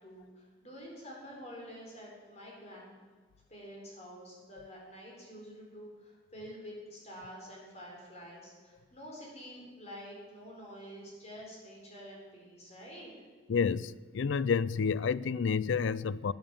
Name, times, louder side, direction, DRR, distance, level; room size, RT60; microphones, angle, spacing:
voice 1, 0.0-2.9 3.5-13.1, equal, 35° left, 4.2 m, -48 dB
voice 2, 13.5-16.3, left 6 dB, 70° left, 0.4 m, -29 dB
12.5 x 9.2 x 7.2 m
head